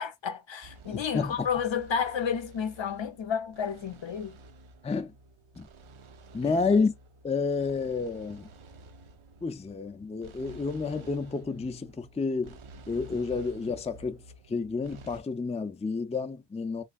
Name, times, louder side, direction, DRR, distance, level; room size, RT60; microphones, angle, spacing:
voice 1, 0.0-4.4 6.4-6.6, left 7 dB, 70° left, 0.6 m, -31 dB
sound 1, 0.6-15.2, right 2 dB, 90° right, 0.6 m, -51 dB
voice 2, 0.9-1.3 4.8-5.1 5.6-5.7 6.3-6.9 7.2-8.5 9.4-12.6 12.9-14.2 14.5-16.8, left 4 dB, 15° left, 0.3 m, -30 dB
3.3 x 3.2 x 2.3 m
wide cardioid pair, 45°, 48 cm